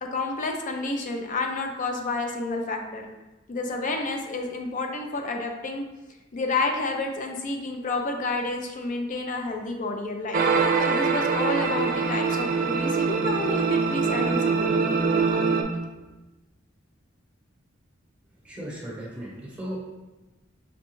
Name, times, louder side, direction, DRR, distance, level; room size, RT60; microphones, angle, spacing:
voice 1, 0.0-3.1 3.5-5.8 6.3-15.0, left 3 dB, 40° left, 3 dB, 0.4 m, -30 dB
sound 1, 10.3-15.6, right 5 dB, 45° right, 0.3 m, -23 dB
voice 2, 18.4-19.8, equal, 5° right, -5 dB, 0.9 m, -36 dB
4.9 x 2.2 x 3.0 m, 1.1 s
head